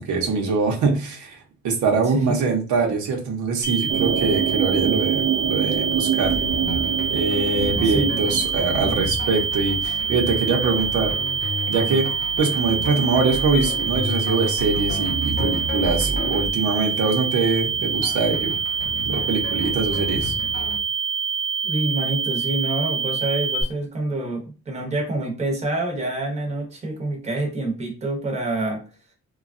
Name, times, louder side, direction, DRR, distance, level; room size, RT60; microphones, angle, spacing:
voice 1, 0.0-6.3 7.1-11.1 11.4-12.1 12.4-18.6 19.0-20.3, right 4 dB, 85° right, 1 dB, 0.8 m, -23 dB
voice 2, 2.0-2.4 7.8-8.2 21.6-28.8, right 2 dB, 20° right, 1 dB, 0.8 m, -27 dB
sound 1, 3.6-23.6, right 6 dB, 85° left, 0.7 m, -26 dB
sound 2, 3.9-8.9, right 9 dB, 60° right, 0.4 m, -26 dB
sound 3, 6.2-20.8, left 2 dB, 35° left, 0.4 m, -32 dB
3.1 x 2.2 x 2.5 m, 0.35 s
cardioid pair, 145°, 29 cm